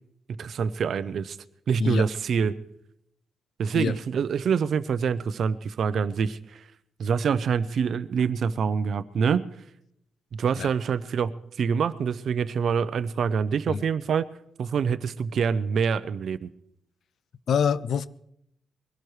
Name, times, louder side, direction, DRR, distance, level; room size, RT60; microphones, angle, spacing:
voice 1, 0.4-1.4 1.7-2.6 3.6-6.6 7.0-9.4 10.3-11.3 11.6-14.2 14.6-16.5, right 6 dB, 50° right, 0.6 m, -26 dB
voice 2, 17.5-18.1, left 7 dB, 55° left, 0.5 m, -25 dB
22.5 x 17.0 x 3.2 m
wide cardioid pair, 160°, 0 cm